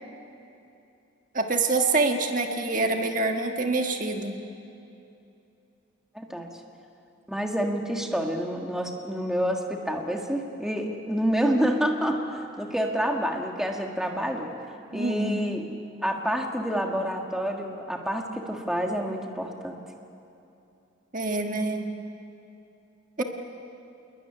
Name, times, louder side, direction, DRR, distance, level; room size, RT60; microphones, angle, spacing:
voice 1, 1.3-4.4 14.9-15.4 21.1-21.9 23.2-23.3, right 3 dB, 40° right, 4 dB, 1.6 m, -26 dB
voice 2, 6.1-6.6 7.3-14.5 14.9-15.7 16.0-19.8 23.2-23.3, equal, 5° right, 2 dB, 1.8 m, -28 dB
28.0 x 21.0 x 9.9 m, 2.7 s
head